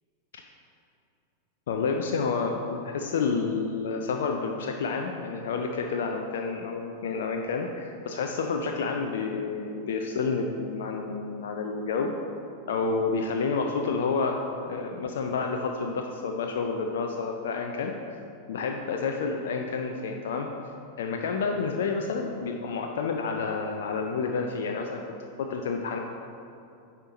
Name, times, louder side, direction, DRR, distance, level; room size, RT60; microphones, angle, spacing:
voice 1, 1.7-12.1 12.7-14.4 14.6-18.2 18.5-20.5 21.0-25.0 25.4-26.0, left 4 dB, 60° left, 3 dB, 0.5 m, -29 dB
9.8 x 4.4 x 4.0 m, 2.6 s
figure-of-eight pair, 90°, 0 cm